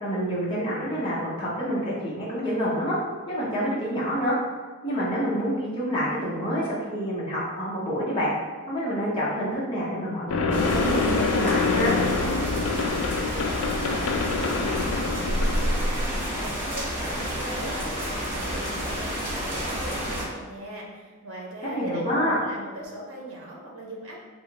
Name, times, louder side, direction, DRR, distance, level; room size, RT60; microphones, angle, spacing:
voice 1, 0.0-3.0 3.3-4.4 4.8-8.3 8.7-11.9 21.7-22.4, equal, 25° left, -7 dB, 0.7 m, -27 dB
sound 1, 10.3-16.4, left 3 dB, 75° left, 0.3 m, -25 dB
sound 2, 10.5-20.2, equal, 10° right, 1.2 m, -31 dB
voice 2, 13.3-24.2, right 1 dB, 80° right, -2 dB, 0.7 m, -40 dB
2.8 x 2.3 x 3.9 m, 1.4 s
head